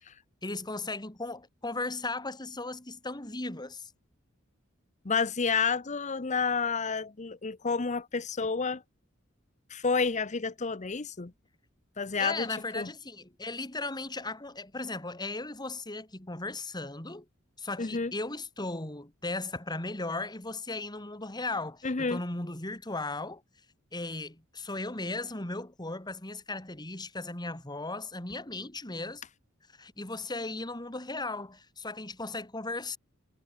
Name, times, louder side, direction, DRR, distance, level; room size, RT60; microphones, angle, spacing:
voice 1, 0.4-3.9 12.2-17.2 17.6-23.4 23.9-29.2 29.8-33.0, left 2 dB, 20° left, 2.7 m, -36 dB
voice 2, 5.0-8.8 9.7-11.3 12.0-12.5 12.7-12.9 17.8-18.1 21.8-22.2, left 5 dB, 35° left, 0.8 m, -30 dB
head